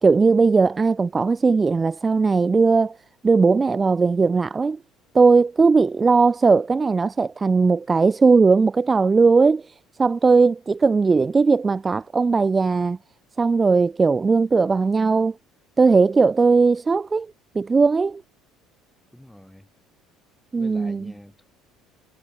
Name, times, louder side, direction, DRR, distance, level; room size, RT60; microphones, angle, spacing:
voice 1, 0.0-3.0 3.2-4.8 5.1-13.0 13.4-15.3 15.8-18.2 20.5-21.1, right 4 dB, 20° right, 1.0 m, -18 dB
voice 2, 19.1-19.7 20.6-21.4, equal, ahead, 6.0 m, -45 dB
cardioid pair, 130°, 0 cm